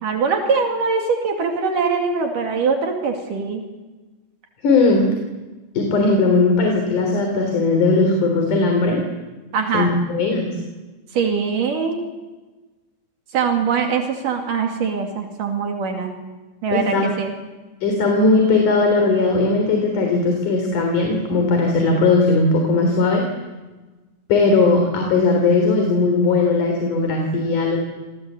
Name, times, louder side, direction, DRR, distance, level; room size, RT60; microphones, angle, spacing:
voice 1, 0.0-3.6 9.5-9.9 11.1-12.0 13.3-16.1 16.6-17.3, right 5 dB, 80° right, 3 dB, 4.0 m, -22 dB
voice 2, 4.6-5.2 5.8-9.0 9.7-10.6 16.7-17.1 17.8-23.3 24.3-27.8, left 3 dB, 70° left, 2 dB, 5.0 m, -18 dB
27.5 x 22.0 x 8.3 m, 1.2 s
omnidirectional pair, 3.7 m